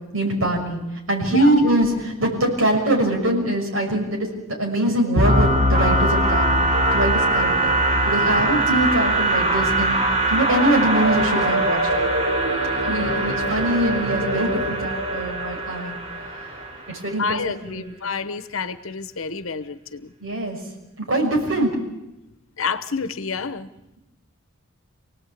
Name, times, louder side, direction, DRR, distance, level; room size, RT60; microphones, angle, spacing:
voice 1, 0.1-0.8 1.1-6.5 6.9-7.8 8.0-10.0 10.3-11.8 12.9-16.0 16.4-16.5 16.9-17.4 17.7-17.8 20.2-20.6 21.0-21.7, right 1 dB, 70° right, 0 dB, 6.4 m, -23 dB
sound 1, 5.2-16.9, right 1 dB, 30° right, 4.7 m, -21 dB
voice 2, 12.8-13.4 17.2-20.1 22.6-23.7, left 5 dB, 70° left, 12 dB, 1.0 m, -29 dB
27.0 x 18.0 x 8.6 m, 0.94 s
head